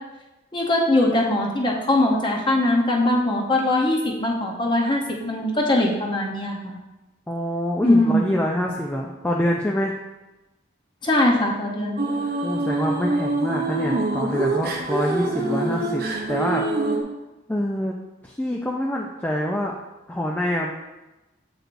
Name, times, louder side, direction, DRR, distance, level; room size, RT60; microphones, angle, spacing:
voice 1, 0.5-6.8 7.8-8.2 11.0-12.0, left 1 dB, 25° left, 0 dB, 0.8 m, -21 dB
voice 2, 7.3-9.9 12.4-16.0 16.3-16.6 17.5-18.0 18.2-19.7 20.1-20.7, left 1 dB, 10° left, -2 dB, 0.3 m, -25 dB
sound 1, 12.0-17.0, right 2 dB, 50° right, 0.7 m, -25 dB
7.5 x 4.8 x 2.6 m, 1.0 s
head